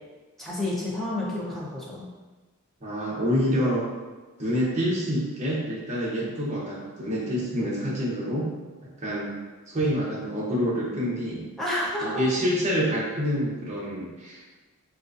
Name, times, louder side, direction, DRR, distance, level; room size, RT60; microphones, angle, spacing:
voice 1, 0.4-2.1 11.6-12.1, left 1 dB, ahead, -7 dB, 0.6 m, -30 dB
voice 2, 2.8-3.9 4.4-8.5 9.0-9.4 9.7-11.4 12.0-14.4, equal, 30° right, -6 dB, 0.8 m, -27 dB
3.7 x 2.4 x 2.5 m, 1.3 s
head